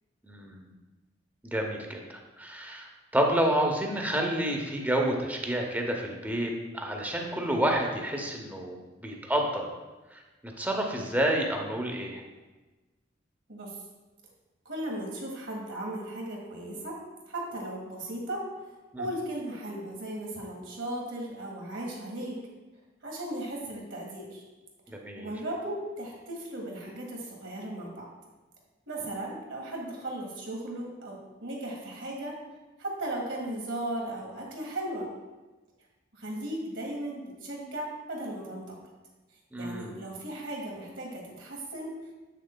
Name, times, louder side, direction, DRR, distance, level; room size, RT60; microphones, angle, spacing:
voice 1, 0.2-0.6 1.4-8.8 9.0-9.7 10.1-12.2 18.9-19.0 24.9-25.3 39.5-40.0, right 1 dB, 10° right, 1 dB, 0.7 m, -29 dB
voice 2, 14.7-17.0 17.3-18.4 19.0-22.4 23.0-24.4 25.2-28.1 28.9-32.3 32.8-35.1 36.1-38.8 39.6-41.9, right 1 dB, 80° right, -2 dB, 1.6 m, -36 dB
7.5 x 6.5 x 2.2 m, 1.2 s
head